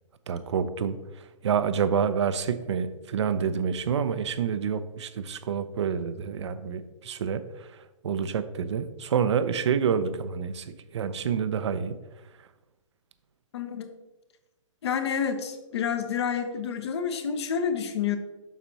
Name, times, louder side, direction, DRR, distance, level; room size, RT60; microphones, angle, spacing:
voice 1, 0.3-7.7 8.0-12.0, right 7 dB, 60° right, 12 dB, 0.5 m, -28 dB
voice 2, 13.5-13.9 14.8-18.2, left 7 dB, 55° left, 8 dB, 0.9 m, -29 dB
7.1 x 6.0 x 2.8 m, 1.1 s
figure-of-eight pair, 120°, 17 cm